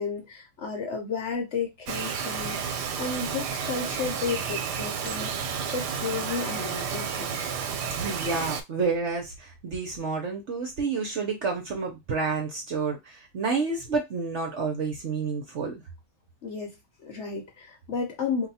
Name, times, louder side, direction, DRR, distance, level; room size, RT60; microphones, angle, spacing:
voice 1, 0.0-7.4 16.4-16.8 17.0-18.5, left 5 dB, 55° left, 0.9 m, -33 dB
Bird vocalization bird call bird song, 1.9-8.6, right 6 dB, 90° right, 1.2 m, -31 dB
voice 2, 7.7-15.8, right 4 dB, 55° right, 0.8 m, -29 dB
2.7 x 2.3 x 4.0 m
omnidirectional pair, 1.7 m